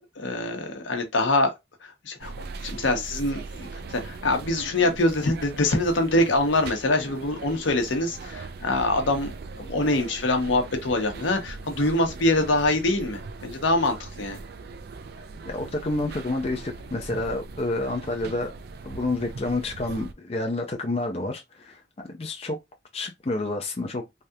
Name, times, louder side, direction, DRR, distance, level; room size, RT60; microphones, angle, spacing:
voice 1, 0.2-1.5 1.8-2.3 2.6-14.4, left 2 dB, 80° left, 0.9 m, -24 dB
sound 1, 2.2-20.1, right 3 dB, 55° right, 0.4 m, -40 dB
voice 2, 15.5-18.5 18.8-22.6 22.9-24.1, left 2 dB, 30° left, 0.5 m, -29 dB
3.3 x 2.4 x 2.7 m
head